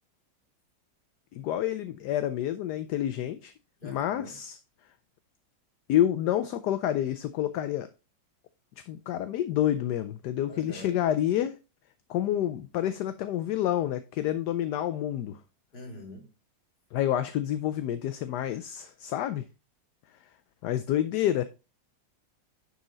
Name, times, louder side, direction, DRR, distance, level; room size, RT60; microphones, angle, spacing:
voice 1, 1.3-3.5 3.8-4.6 5.9-7.9 8.9-11.6 12.1-15.4 16.9-19.4 20.6-21.4, left 11 dB, 70° left, 1.1 m, -28 dB
voice 2, 3.8-4.4 10.5-11.0 15.7-16.3, left 1 dB, 30° left, 2.3 m, -44 dB
10.5 x 4.2 x 3.8 m
omnidirectional pair, 2.0 m